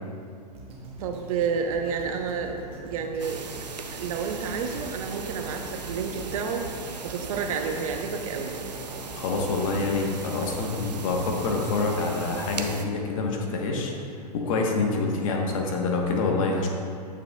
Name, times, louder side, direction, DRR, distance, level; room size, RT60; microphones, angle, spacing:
sound 1, 0.5-12.7 13.3-13.4, right 2 dB, 25° right, 1.1 m, -43 dB
voice 1, 1.0-3.5 3.9-6.7 7.0-8.5, right 6 dB, 55° right, 5 dB, 0.8 m, -30 dB
sound 2, 3.2-12.8, right 4 dB, 90° right, 0.6 m, -38 dB
voice 2, 9.1-13.9 14.3-16.7, left 3 dB, 55° left, 0 dB, 1.2 m, -26 dB
8.2 x 6.8 x 2.3 m, 2.3 s
hypercardioid pair, 105°, 21 cm